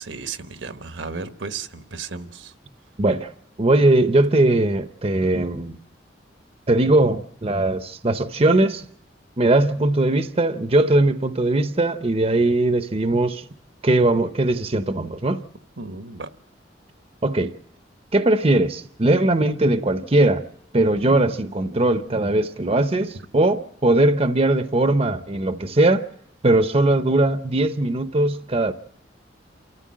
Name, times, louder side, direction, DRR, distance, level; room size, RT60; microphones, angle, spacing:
voice 1, 0.0-2.5 15.8-16.3, right 4 dB, 80° right, 1.3 m, -34 dB
voice 2, 3.0-3.3 3.6-5.8 6.7-8.9 9.4-13.4 13.8-15.4 17.2-17.5 18.1-20.5 20.7-26.1 26.4-28.7, right 2 dB, 35° right, 0.8 m, -20 dB
28.5 x 14.0 x 7.5 m
head